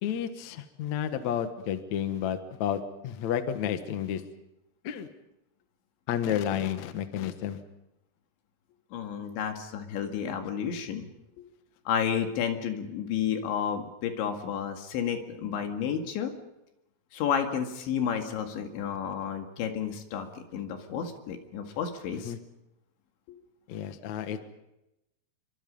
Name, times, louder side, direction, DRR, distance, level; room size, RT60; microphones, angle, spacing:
voice 1, 0.0-4.2 4.8-5.1 6.1-7.6 22.2-22.4 23.7-24.4, left 9 dB, 85° left, 9 dB, 1.6 m, -31 dB
voice 2, 8.9-11.1 11.9-16.3 17.1-22.3 23.3-23.4, left 8 dB, 70° left, 5 dB, 4.2 m, -31 dB
28.0 x 24.0 x 5.5 m, 0.90 s
omnidirectional pair, 5.8 m